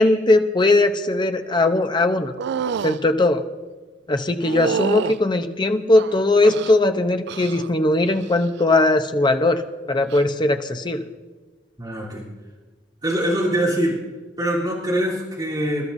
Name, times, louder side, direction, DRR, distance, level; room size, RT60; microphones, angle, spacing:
voice 1, 0.0-2.3 2.8-3.4 4.1-9.6 9.9-11.0, left 2 dB, 25° left, 7 dB, 0.7 m, -19 dB
sound 1, 2.4-3.0 4.4-5.2 5.9-6.8 7.3-7.7 8.0-8.5 10.0-10.2, right 7 dB, 65° right, 0.3 m, -28 dB
voice 2, 11.8-12.3 13.0-14.0 14.4-15.8, right 1 dB, 25° right, -7 dB, 3.2 m, -23 dB
27.0 x 12.5 x 2.7 m, 1.3 s
head